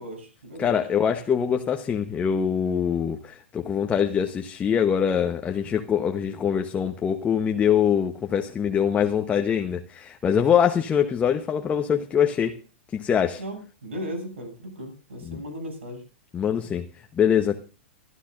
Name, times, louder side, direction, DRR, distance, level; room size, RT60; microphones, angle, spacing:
voice 1, 0.0-0.9 13.4-16.0, equal, 85° right, 7.6 m, -36 dB
voice 2, 0.6-12.5 12.9-13.4 15.2-15.4 16.3-16.9 17.1-17.6, left 8 dB, 20° left, 1.1 m, -23 dB
24.5 x 13.0 x 2.6 m
hypercardioid pair, 115°, 7 cm